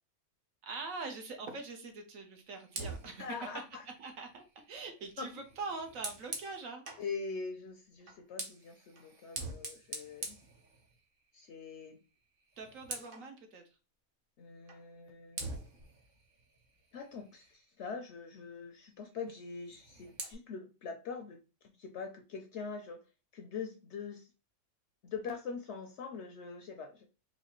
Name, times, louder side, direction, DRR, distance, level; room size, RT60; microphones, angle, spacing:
voice 1, 0.6-3.4 3.9-6.8 12.6-13.6, right 4 dB, 70° right, 5 dB, 1.1 m, -43 dB
Fire, 2.7-7.1 8.0-11.3 11.6-11.9 12.2-13.3 14.7-14.8 15.3-17.7 19.6-20.3, right 3 dB, 45° right, 0.8 m, -45 dB
voice 2, 3.2-3.8 5.2-5.3 7.0-10.4 11.3-12.0 14.4-15.5 16.9-21.4 21.8-23.0 23.3-24.3 25.0-27.1, left 5 dB, 65° left, 4 dB, 0.7 m, -43 dB
3.9 x 2.7 x 2.9 m, 0.31 s
omnidirectional pair, 1.5 m